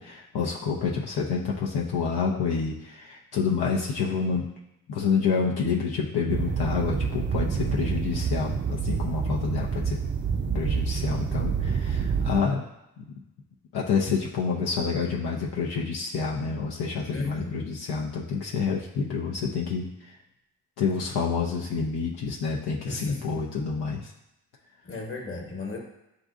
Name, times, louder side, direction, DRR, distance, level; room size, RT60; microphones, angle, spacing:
voice 1, 0.0-4.5 4.9-10.0 10.5-12.6 13.0-13.1 13.7-19.9 20.8-24.0, left 5 dB, 75° left, -2 dB, 0.7 m, -28 dB
sound 1, 6.3-12.4, right 6 dB, 30° right, 0.4 m, -28 dB
voice 2, 17.1-17.7 22.8-23.5 24.8-25.8, left 3 dB, 35° left, 0 dB, 1.2 m, -35 dB
7.6 x 2.6 x 2.4 m, 0.89 s
supercardioid pair, 45°, 39 cm